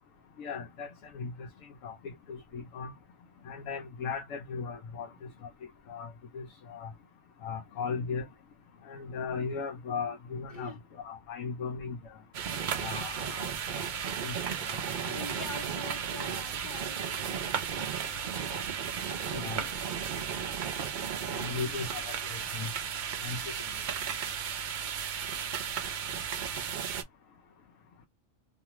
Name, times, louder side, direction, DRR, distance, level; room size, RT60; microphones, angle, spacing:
voice 1, 0.4-1.5 1.8-2.9 3.4-5.3 5.9-6.9 7.4-8.3 8.9-12.1 12.8-13.8 14.2-14.4 14.7-15.5 19.3-19.7 21.3-22.7 23.2-23.4, left 5 dB, 75° left, 0.9 m, -37 dB
sound 1, 12.3-27.0, right 7 dB, 85° right, 0.4 m, -34 dB
voice 2, 12.5-13.0 15.1-20.4 21.2-21.7 23.6-23.7 26.5-27.1, left 2 dB, 45° left, 0.9 m, -48 dB
2.4 x 2.4 x 2.9 m
omnidirectional pair, 1.4 m